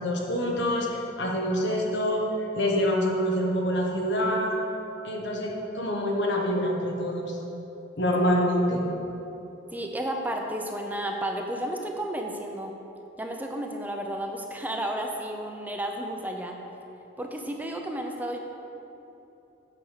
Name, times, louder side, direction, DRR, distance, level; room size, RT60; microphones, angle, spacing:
voice 1, 0.0-2.2 2.5-4.5 5.0-7.4 8.0-8.8, equal, 65° left, 0 dB, 1.3 m, -26 dB
voice 2, 9.7-12.7 13.2-16.6 17.2-18.4, right 1 dB, 10° right, 2 dB, 0.6 m, -32 dB
8.0 x 5.3 x 6.6 m, 3.0 s
head